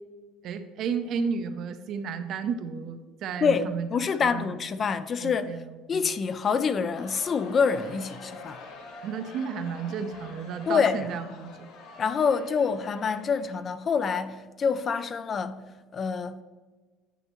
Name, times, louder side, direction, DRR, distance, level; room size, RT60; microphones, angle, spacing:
voice 1, 0.4-3.9 4.2-4.5 5.2-5.6 5.9-6.1 9.0-11.7, right 6 dB, 50° right, 0.6 m, -32 dB
voice 2, 3.4-5.6 5.9-8.6 10.7-11.1 12.0-15.6 15.9-16.4, left 6 dB, 30° left, 0.3 m, -26 dB
Crowd, 6.7-14.0, left 3 dB, 70° left, 1.4 m, -46 dB
10.0 x 5.5 x 3.0 m
cardioid pair, 155°, 0 cm